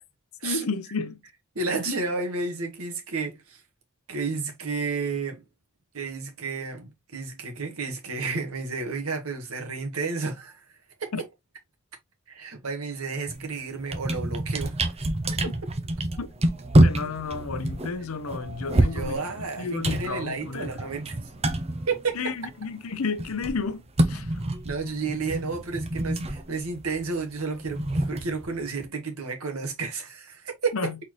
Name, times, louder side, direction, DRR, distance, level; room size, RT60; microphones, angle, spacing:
voice 1, 0.4-1.2 1.8-2.0 11.1-11.2 16.2-16.3 16.8-19.2 19.6-21.0 22.1-24.4 30.7-31.0, left 4 dB, 75° left, 0.7 m, -32 dB
voice 2, 1.6-3.6 4.1-5.4 5.9-10.6 11.0-11.1 12.3-14.8 15.4-15.5 18.7-21.1 21.9-22.2 24.6-30.9, right 4 dB, 80° right, 1.7 m, -31 dB
sound 1, 13.3-13.5 13.8-22.7 22.9-28.9, right 1 dB, 30° right, 0.7 m, -27 dB
4.3 x 3.9 x 3.1 m
head